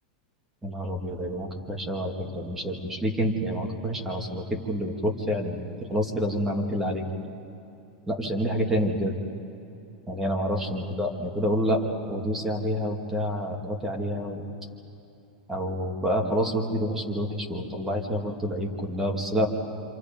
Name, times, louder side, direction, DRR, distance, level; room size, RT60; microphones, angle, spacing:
voice 1, 0.6-5.6 5.9-7.0 8.1-9.2 10.1-11.8 12.1-14.4 15.5-19.5, equal, 10° right, 0 dB, 2.4 m, -28 dB
28.0 x 27.0 x 5.3 m, 2.8 s
supercardioid pair, 160°, 4 cm